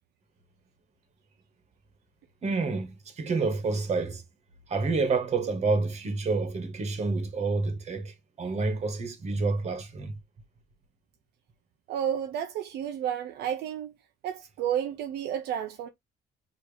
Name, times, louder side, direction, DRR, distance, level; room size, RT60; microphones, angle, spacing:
voice 1, 2.4-4.2 4.7-10.1, right 3 dB, 40° right, 1.5 m, -28 dB
voice 2, 11.9-13.9 14.2-15.9, right 9 dB, 75° right, 0.6 m, -31 dB
4.7 x 3.0 x 3.4 m
cardioid pair, 110°, 17 cm